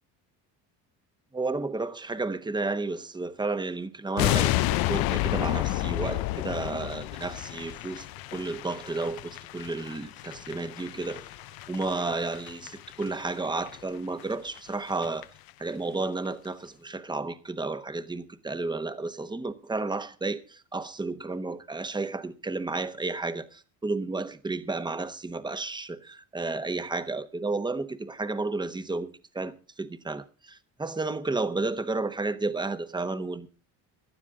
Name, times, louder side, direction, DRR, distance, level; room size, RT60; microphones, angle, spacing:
voice 1, 1.3-11.3 11.7-15.3 15.6-33.5, right 3 dB, 10° right, 1.1 m, -32 dB
sound 1, 4.2-13.3 13.6-13.8 14.2-14.3 14.6-14.7 14.9-15.2 15.5-15.6, left 17 dB, 65° left, 0.6 m, -31 dB
18.0 x 12.0 x 3.7 m
cardioid pair, 105°, 40 cm